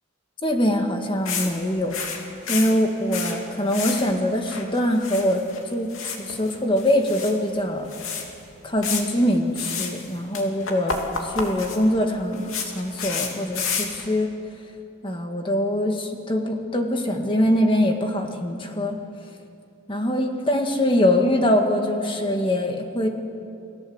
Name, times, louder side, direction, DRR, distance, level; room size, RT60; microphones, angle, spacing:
voice 1, 0.4-2.0 2.5-5.4 5.7-7.9 8.6-14.3 15.0-19.0 19.9-23.1, left 1 dB, 25° left, 4 dB, 1.9 m, -23 dB
sound 1, 1.3-1.5 1.8-3.4 3.7-4.1 4.4-5.6 5.9-7.3 7.6-7.7 7.9-8.2 8.8-9.0 9.6-10.1 10.3-14.1, left 5 dB, 85° left, 3.0 m, -30 dB
29.5 x 18.5 x 8.1 m, 2.7 s
head